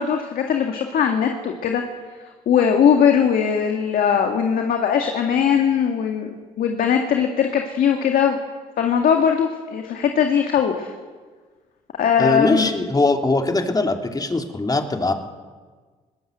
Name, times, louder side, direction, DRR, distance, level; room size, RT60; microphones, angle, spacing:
voice 1, 0.0-1.8 2.5-6.3 6.6-8.4 8.8-10.9 11.9-12.7, left 7 dB, 65° left, 3 dB, 2.1 m, -20 dB
voice 2, 12.2-15.1, left 3 dB, 25° left, 4 dB, 3.2 m, -21 dB
22.5 x 19.0 x 8.1 m, 1.5 s
hypercardioid pair, 55°, 16 cm